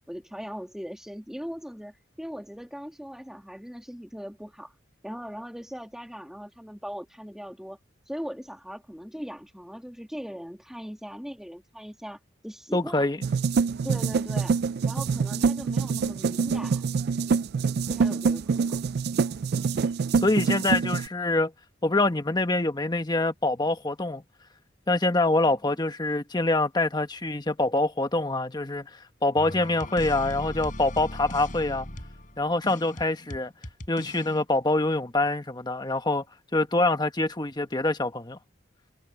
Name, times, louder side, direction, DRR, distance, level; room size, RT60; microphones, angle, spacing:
voice 1, 0.1-4.8 5.0-7.8 8.1-13.1 13.8-16.9 17.9-18.8 25.5-25.6, equal, 5° right, 1.9 m, -39 dB
voice 2, 12.7-13.2 20.2-21.5 21.8-24.2 24.9-28.9 29.2-31.9 32.4-33.5 33.9-36.2 36.5-38.4, left 2 dB, 25° left, 1.3 m, -25 dB
sound 1, 13.2-21.1, right 5 dB, 55° right, 0.3 m, -25 dB
sound 2, 29.3-34.4, left 1 dB, 45° left, 5.6 m, -38 dB
head